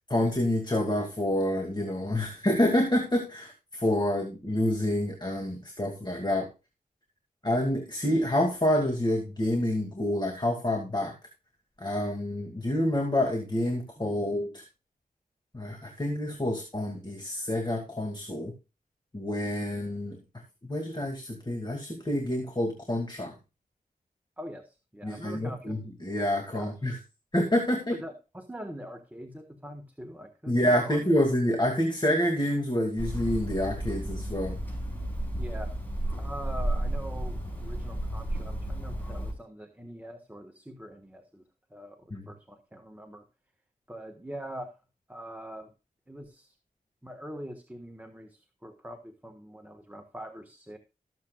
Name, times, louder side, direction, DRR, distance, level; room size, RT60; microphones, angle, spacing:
voice 1, 0.1-6.5 7.4-11.1 11.8-14.6 15.5-18.5 19.1-20.2 20.6-23.3 25.0-27.0 27.3-28.0 30.5-34.6 42.1-42.2, left 1 dB, 25° left, 3 dB, 2.2 m, -28 dB
voice 2, 14.0-14.3 24.4-25.8 26.5-26.8 27.9-31.0 35.4-35.8 36.2-41.4 41.7-43.2 43.9-44.7 45.1-45.7 46.1-46.5 47.0-50.8, equal, 10° right, 5 dB, 1.4 m, -43 dB
Hammer, 33.0-39.3, right 1 dB, 10° left, 6.0 m, -33 dB
19.0 x 7.6 x 2.3 m, 0.29 s
wide cardioid pair, 60°, 16 cm